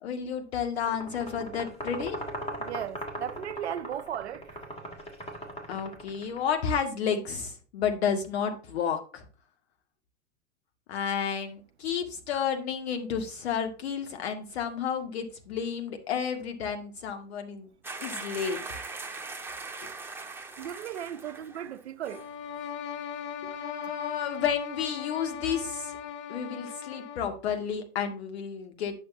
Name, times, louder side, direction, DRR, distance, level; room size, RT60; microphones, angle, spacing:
voice 1, 0.0-2.2 5.7-9.3 10.9-17.7 18.0-18.6 23.4-25.9 26.3-28.9, left 7 dB, 65° left, 2.0 m, -31 dB
sound 1, 0.8-6.5, equal, 15° left, 2.7 m, -39 dB
voice 2, 2.6-4.6 20.6-22.2 23.8-23.9, right 10 dB, 70° right, 0.7 m, -36 dB
sound 2, 17.8-21.8 22.0-22.3, right 3 dB, 5° right, 1.4 m, -40 dB
sound 3, 22.0-27.4, left 8 dB, 35° left, 0.8 m, -39 dB
10.5 x 6.3 x 2.7 m
figure-of-eight pair, 85°, 34 cm